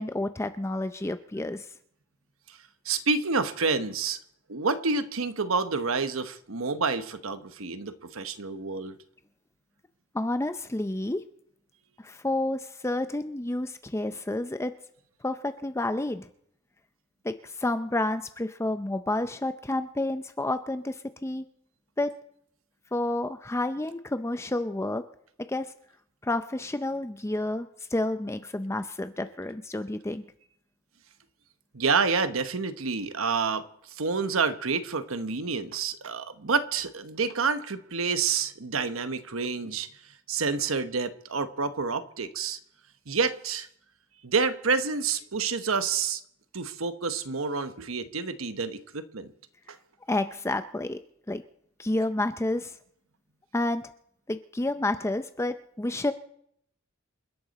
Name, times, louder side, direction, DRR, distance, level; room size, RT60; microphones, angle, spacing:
voice 1, 0.0-1.7 10.1-11.2 12.0-14.7 15.2-16.3 17.2-21.4 22.0-22.1 22.9-25.0 25.5-25.7 26.2-30.2 50.1-51.0 51.3-51.4 51.8-52.8 53.5-53.8 54.3-56.1, left 2 dB, 15° left, 0.5 m, -30 dB
voice 2, 2.8-4.2 4.5-9.0 31.7-39.9 40.3-42.6 43.1-43.7 44.2-46.2 46.5-49.3 49.7-49.8, right 5 dB, 75° right, 1.1 m, -28 dB
28.5 x 11.5 x 4.2 m
head